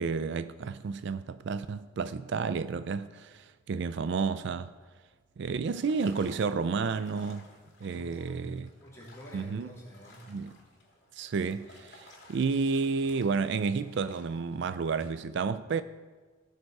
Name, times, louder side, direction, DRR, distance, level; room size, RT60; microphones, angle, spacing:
voice 1, 0.0-4.7 5.4-7.5 7.8-8.7 9.3-9.7 10.3-10.5 11.1-15.8, right 5 dB, 65° right, 0.4 m, -31 dB
sound 1, 5.6-15.1, left 2 dB, 60° left, 2.8 m, -57 dB
voice 2, 7.9-8.5 8.8-10.3, equal, 15° left, 3.4 m, -48 dB
17.5 x 6.6 x 4.7 m
head